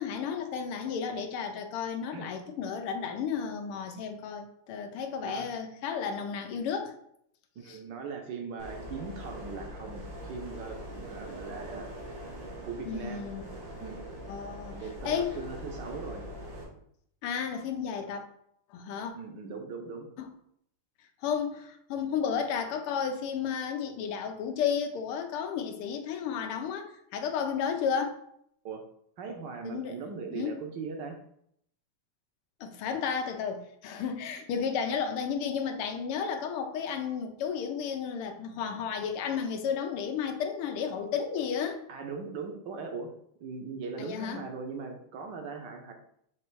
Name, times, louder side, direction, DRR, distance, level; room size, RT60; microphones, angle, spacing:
voice 1, 0.0-6.9 7.7-7.8 12.9-13.4 14.3-14.8 15.0-15.4 17.2-18.2 18.7-19.1 20.2-20.3 21.2-26.9 27.1-28.2 29.6-30.0 30.3-30.6 32.6-41.8 44.0-44.4, left 7 dB, 80° left, 5 dB, 1.6 m, -32 dB
voice 2, 7.6-11.9 12.6-13.3 13.8-14.1 14.7-16.3 19.1-20.1 28.6-28.8 29.2-31.2 41.9-43.1 43.4-45.9, right 5 dB, 65° right, 4 dB, 1.3 m, -39 dB
sound 1, 8.6-16.6, equal, 85° right, 2.7 m, -42 dB
6.6 x 3.1 x 4.6 m, 0.70 s
omnidirectional pair, 2.4 m